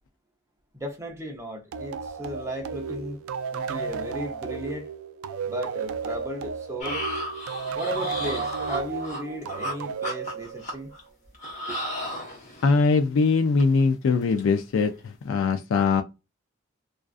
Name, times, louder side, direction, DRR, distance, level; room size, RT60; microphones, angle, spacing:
voice 1, 0.7-3.2 3.5-4.9 5.4-7.0 7.7-10.9 11.7-11.8, equal, 15° right, 0.6 m, -35 dB
sound 1, 1.7-11.0, right 5 dB, 90° right, 0.3 m, -33 dB
sound 2, 6.8-9.8 10.0-11.0 11.3-12.8 13.2-13.3 13.6-13.8 14.1-14.4 14.8-15.0, equal, 35° left, 1.0 m, -34 dB
voice 2, 12.6-16.0, left 4 dB, 70° left, 0.3 m, -22 dB
2.5 x 2.4 x 2.3 m
head